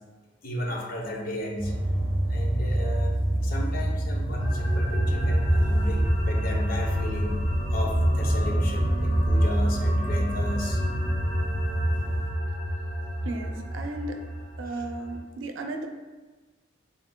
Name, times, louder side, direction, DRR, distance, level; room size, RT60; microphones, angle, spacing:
voice 1, 0.4-1.7 2.3-3.2 3.4-7.4 7.7-10.8 14.7-14.8, left 1 dB, 45° left, 0 dB, 0.6 m, -34 dB
sound 1, 1.6-12.3, right 1 dB, 30° right, 0.8 m, -29 dB
sound 2, 4.4-15.2, equal, 85° left, 1.2 m, -27 dB
voice 2, 13.2-14.2 14.6-15.9, right 2 dB, 75° right, 4 dB, 0.5 m, -34 dB
7.4 x 2.6 x 2.2 m, 1.3 s
head